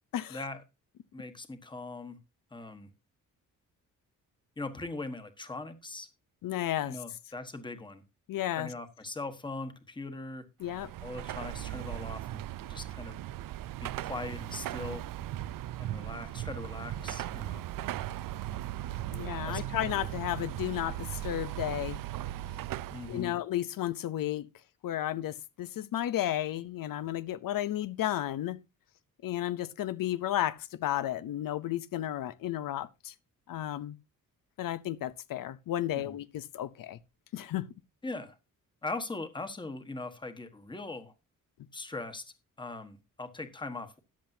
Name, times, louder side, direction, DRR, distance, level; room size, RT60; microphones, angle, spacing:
voice 1, 0.3-0.6 1.1-2.2 2.5-2.9 4.6-6.1 6.9-8.0 8.6-10.5 11.0-13.2 13.8-15.0 15.8-17.6 19.4-20.0 22.9-23.3 35.9-36.1 38.0-38.4 38.8-41.1 41.7-42.2 42.6-44.0, left 3 dB, 15° left, 1.3 m, -40 dB
voice 2, 6.4-7.0 8.3-8.7 10.6-10.9 19.1-22.0 23.1-24.5 24.8-28.6 29.2-33.1 33.5-34.0 34.6-37.0 37.3-37.7, left 13 dB, 80° left, 0.8 m, -33 dB
Car passing by / Traffic noise roadway noise / Engine, 10.6-23.3, right 13 dB, 80° right, 0.5 m, -38 dB
13.5 x 10.5 x 2.7 m
wide cardioid pair, 165°, 33 cm